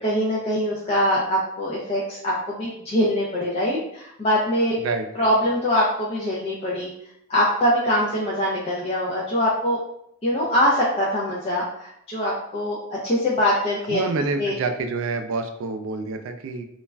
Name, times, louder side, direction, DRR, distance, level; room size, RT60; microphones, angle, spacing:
voice 1, 0.0-4.8 5.2-6.9 7.3-9.8 10.2-12.8 13.0-14.0 14.4-14.5, equal, 30° left, -5 dB, 0.4 m, -23 dB
voice 2, 4.8-5.3 13.9-16.6, right 3 dB, 70° right, 6 dB, 0.3 m, -27 dB
2.3 x 2.1 x 3.2 m, 0.77 s
head